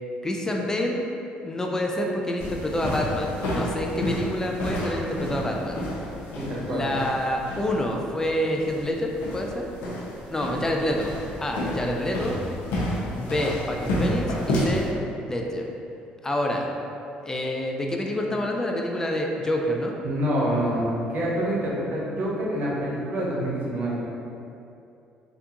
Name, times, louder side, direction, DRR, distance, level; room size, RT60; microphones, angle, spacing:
voice 1, 0.2-1.0 1.4-5.8 6.7-9.7 10.3-11.1 11.4-12.4 13.1-14.9 15.2-15.7 16.2-16.7 17.2-20.0, left 1 dB, 15° left, 1 dB, 0.4 m, -27 dB
sound 1, 2.4-14.9, equal, 75° left, 0.6 m, -30 dB
voice 2, 6.4-6.9 20.0-24.2, equal, 50° right, -5 dB, 0.9 m, -27 dB
3.3 x 2.4 x 2.9 m, 2.7 s
supercardioid pair, 75°, 4 cm